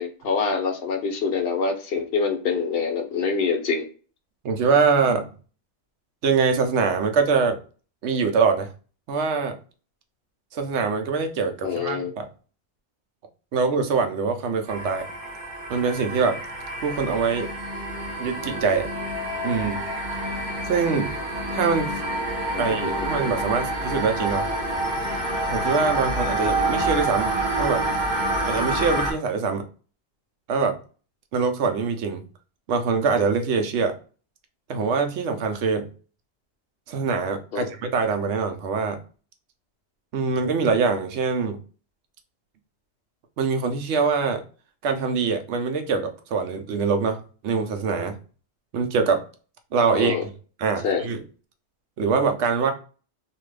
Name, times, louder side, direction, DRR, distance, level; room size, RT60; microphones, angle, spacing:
voice 1, 0.0-3.9 11.6-12.1 22.5-23.1 37.5-37.7 49.9-50.2 50.8-51.1, left 5 dB, 65° left, 5 dB, 0.8 m, -25 dB
voice 2, 4.4-5.3 6.2-7.6 8.0-8.7 9.1-9.6 10.5-12.3 13.5-15.0 15.7-16.4 16.8-17.5 18.2-18.9 19.4-19.8 20.7-21.1 21.5-21.9 22.6-24.4 25.5-27.3 27.6-27.8 28.5-29.6 30.5-30.8 31.3-32.2 32.7-33.9 34.7-35.9 36.9-39.0 40.1-41.6 43.4-44.4 44.8-47.2 47.4-48.2 48.7-49.2 49.7-50.3 50.6-51.2 52.0-52.7, right 5 dB, 85° right, 6 dB, 0.9 m, -23 dB
sound 1, 14.7-29.1, right 1 dB, 45° right, 1.1 m, -27 dB
2.6 x 2.4 x 3.2 m, 0.37 s
omnidirectional pair, 1.1 m